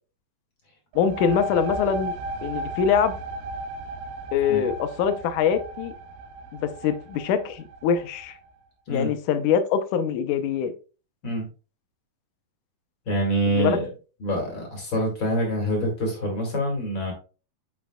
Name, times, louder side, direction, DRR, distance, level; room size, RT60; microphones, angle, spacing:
sound 1, 0.9-8.4, right 2 dB, 90° right, 2.4 m, -35 dB
voice 1, 1.0-2.1 2.4-3.1 4.3-5.9 6.5-8.4 8.9-10.7 13.5-13.8, left 7 dB, 75° left, 9 dB, 2.0 m, -24 dB
voice 2, 13.1-13.9 14.2-17.1, equal, 40° left, 0 dB, 2.4 m, -26 dB
8.9 x 6.1 x 2.2 m, 0.34 s
omnidirectional pair, 4.2 m